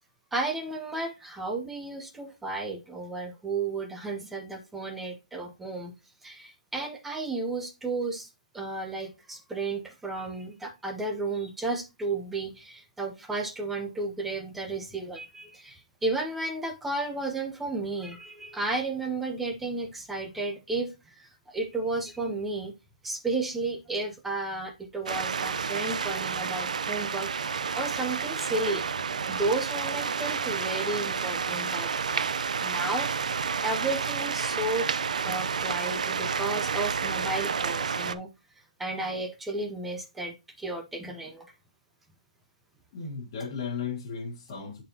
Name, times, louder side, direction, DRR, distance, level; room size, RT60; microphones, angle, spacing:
voice 1, 0.3-5.9 6.2-8.3 8.5-22.7 23.0-28.8 29.3-32.3 32.6-34.9 35.2-38.3 38.8-41.5, right 3 dB, 5° right, 0.4 m, -33 dB
sound 1, 25.1-38.2, right 6 dB, 70° right, 0.5 m, -30 dB
voice 2, 42.9-44.8, left 5 dB, 25° left, 1.3 m, -35 dB
9.9 x 4.2 x 2.7 m
hypercardioid pair, 180°, 4 cm